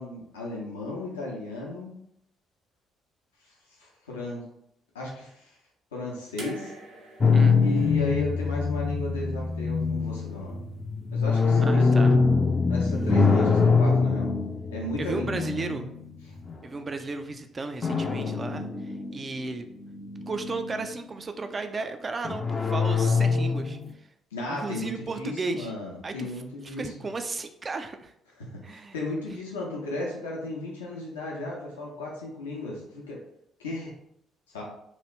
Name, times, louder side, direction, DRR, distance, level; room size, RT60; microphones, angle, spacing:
voice 1, 0.0-1.9 3.4-3.5 3.8-4.5 4.9-5.6 5.9-6.7 7.6-10.6 11.1-12.2 12.7-14.3 14.7-15.8 16.3-16.4 24.3-27.1 28.4-33.2 33.6-33.9 34.5-34.6, left 2 dB, 85° left, -3 dB, 0.6 m, -35 dB
sound 1, 6.4-9.5 10.7-10.8, right 2 dB, 75° right, 0.8 m, -46 dB
sound 2, 7.2-16.6 17.8-19.4 19.8-20.9 22.2-23.9, left 4 dB, 35° left, 0.4 m, -24 dB
voice 2, 11.7-12.2 15.0-15.9 16.6-19.7 20.3-23.8 24.5-25.7 26.0-26.3 26.6-28.1 28.6-28.9, right 3 dB, 35° right, 7 dB, 0.3 m, -34 dB
3.1 x 2.4 x 3.1 m, 0.74 s
hypercardioid pair, 45°, 0 cm